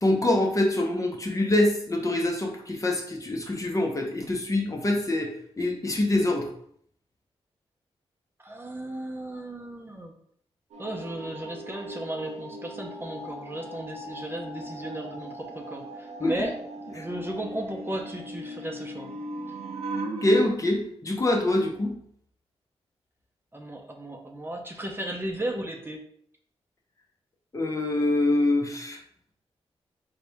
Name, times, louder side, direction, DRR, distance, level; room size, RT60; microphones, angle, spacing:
voice 1, 0.0-5.3 5.6-6.5 16.2-16.3 20.2-21.9 27.5-29.0, left 1 dB, 30° left, 1 dB, 0.8 m, -25 dB
voice 2, 8.4-10.1 10.8-16.5 16.9-19.1 23.5-26.0, right 1 dB, 20° right, 1 dB, 0.7 m, -35 dB
sound 1, 10.7-20.5, right 1 dB, 80° right, 0.7 m, -38 dB
4.0 x 2.8 x 3.5 m, 0.65 s
cardioid pair, 70°, 11 cm